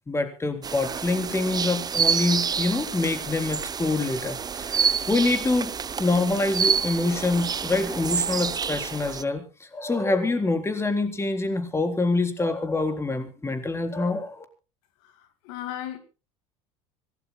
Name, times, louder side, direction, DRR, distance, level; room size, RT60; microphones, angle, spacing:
voice 1, 0.1-5.7 6.0-14.4, left 2 dB, 15° left, 3.8 m, -26 dB
sound 1, 0.6-9.2, right 6 dB, 25° right, 0.6 m, -28 dB
voice 2, 15.0-16.0, left 12 dB, 75° left, 2.0 m, -36 dB
25.0 x 17.5 x 2.2 m
hypercardioid pair, 85°, 16 cm